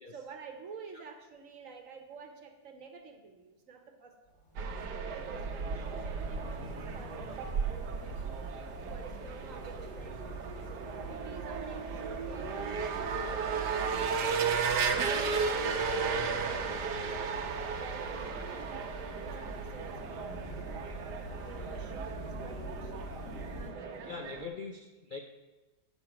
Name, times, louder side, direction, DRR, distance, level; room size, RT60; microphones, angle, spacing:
voice 1, 0.1-4.1 5.1-7.9 8.9-12.9 13.1-14.6 15.1-17.4 17.8-20.8 21.2-23.1 23.6-24.5, right 5 dB, 55° right, 5 dB, 1.3 m, -49 dB
sound 1, 4.3-23.7, right 1 dB, 35° left, 2.0 m, -44 dB
sound 2, 4.6-24.5, right 5 dB, 85° right, 1.5 m, -35 dB
voice 2, 24.1-25.2, left 4 dB, 50° left, 3 dB, 0.6 m, -42 dB
9.7 x 6.2 x 5.8 m, 1.2 s
omnidirectional pair, 1.8 m